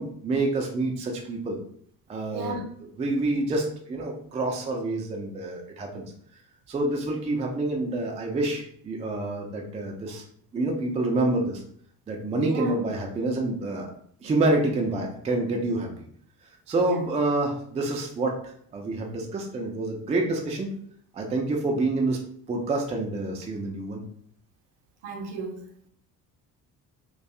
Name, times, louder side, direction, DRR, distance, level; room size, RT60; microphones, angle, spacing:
voice 1, 0.0-1.6 2.1-2.6 3.0-6.0 6.7-10.2 10.5-11.6 12.1-13.9 14.2-15.9 16.7-20.7 21.1-22.2 22.5-24.0, right 2 dB, 15° right, 0.4 m, -27 dB
voice 2, 2.3-2.7 12.4-12.8 16.8-17.0 25.0-25.6, right 4 dB, 55° right, 0.7 m, -33 dB
2.6 x 2.2 x 2.4 m
figure-of-eight pair, 50°, 50 cm